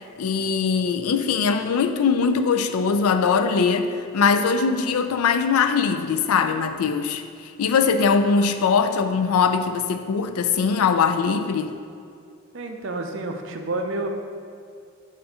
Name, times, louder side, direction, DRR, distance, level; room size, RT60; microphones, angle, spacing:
voice 1, 0.2-7.2 7.6-11.7, left 5 dB, 85° left, 8 dB, 0.4 m, -21 dB
voice 2, 12.5-14.1, right 2 dB, 55° right, 4 dB, 0.5 m, -29 dB
6.9 x 2.5 x 5.4 m, 2.4 s
head